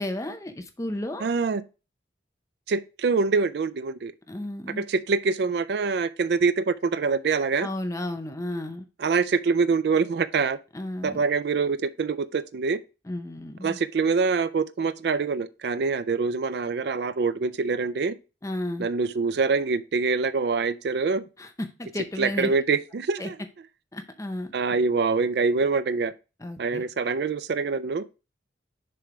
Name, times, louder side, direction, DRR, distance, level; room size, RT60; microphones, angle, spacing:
voice 1, 0.0-1.3 4.3-4.8 7.6-8.8 10.7-11.2 13.1-13.8 18.4-18.9 21.4-22.5 23.2-23.3 23.9-24.5 26.4-26.8, left 1 dB, 15° left, 0.6 m, -33 dB
voice 2, 1.2-1.6 2.7-4.1 4.8-7.7 9.0-10.6 11.0-12.8 13.6-18.2 18.8-21.3 22.2-23.4 24.5-26.1 26.6-28.1, right 4 dB, 60° right, 0.4 m, -25 dB
6.8 x 3.2 x 4.9 m
head